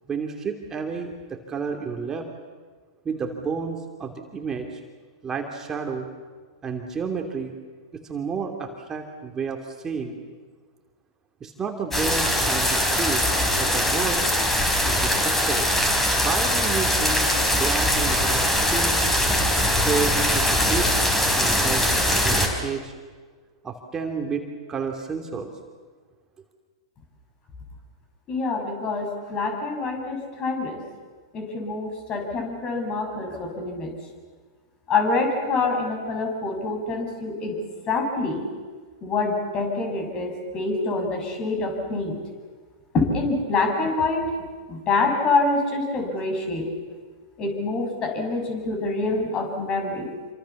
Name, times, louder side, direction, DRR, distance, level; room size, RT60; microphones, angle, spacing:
voice 1, 0.1-2.3 3.0-4.8 5.2-6.1 6.6-7.5 7.9-10.2 11.4-13.2 13.6-14.2 14.8-15.7 16.2-17.3 17.6-18.4 18.7-19.0 19.8-20.9 21.3-21.9 22.2-22.9 23.6-24.4 24.7-25.5, right 5 dB, 20° right, 3 dB, 2.8 m, -30 dB
sound 1, 11.9-22.5, equal, 10° left, 5.0 m, -22 dB
voice 2, 28.3-30.8 31.3-33.9 34.9-37.6 37.9-38.5 39.0-42.2 42.9-44.3 44.7-46.7 47.4-50.1, left 3 dB, 35° left, 3 dB, 7.2 m, -26 dB
27.5 x 25.5 x 7.2 m, 1.5 s
hypercardioid pair, 100°, 3 cm